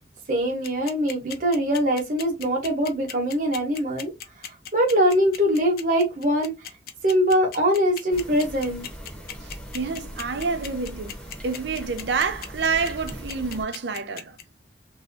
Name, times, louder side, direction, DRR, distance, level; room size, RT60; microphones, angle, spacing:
voice 1, 0.3-4.1 4.7-6.5 7.0-8.9, equal, 50° right, 1.1 m, -22 dB
sound 1, 0.6-14.4, left 8 dB, 55° left, 0.5 m, -37 dB
sound 2, 8.1-13.6, equal, 10° left, 1.0 m, -40 dB
voice 2, 9.4-11.2 11.4-14.4, right 4 dB, 80° right, 0.5 m, -28 dB
3.0 x 2.7 x 2.7 m
head